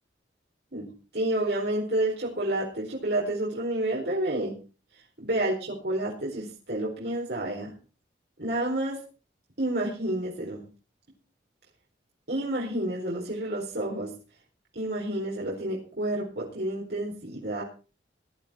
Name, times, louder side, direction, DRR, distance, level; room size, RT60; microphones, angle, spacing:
voice 1, 0.7-4.6 5.2-7.7 8.4-9.0 9.6-10.6 12.3-14.1 14.7-17.6, right 1 dB, 60° right, -4 dB, 4.5 m, -29 dB
18.5 x 11.5 x 4.5 m, 0.35 s
head